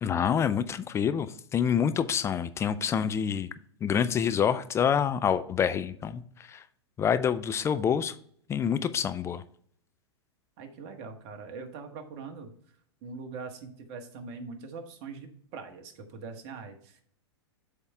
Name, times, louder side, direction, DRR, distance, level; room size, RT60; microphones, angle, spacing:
voice 1, 0.0-3.5 3.8-6.2 6.5-6.6 7.0-8.1 8.5-9.4, left 8 dB, 20° left, 12 dB, 0.4 m, -27 dB
voice 2, 10.6-12.5 13.0-17.0, right 4 dB, 45° right, 5 dB, 1.5 m, -42 dB
8.0 x 3.6 x 5.4 m, 0.62 s
hypercardioid pair, 105°, 15 cm